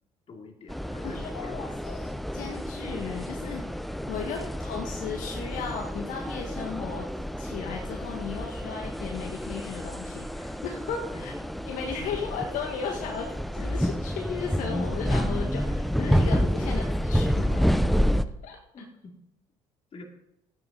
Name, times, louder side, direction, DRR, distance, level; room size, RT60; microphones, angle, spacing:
voice 1, 0.3-1.8 4.2-4.6 11.1-11.4 11.9-12.5 16.6-16.7 18.7-19.2 19.9-20.0, left 3 dB, 45° left, 2 dB, 2.7 m, -45 dB
sound 1, 0.7-18.2, equal, ahead, 0.7 m, -29 dB
voice 2, 1.0-3.7 4.1-7.1 7.4-11.3 11.7-17.7 18.4-18.6, left 6 dB, 70° left, 1 dB, 1.6 m, -35 dB
12.0 x 9.4 x 4.0 m, 0.84 s
supercardioid pair, 80°, 14 cm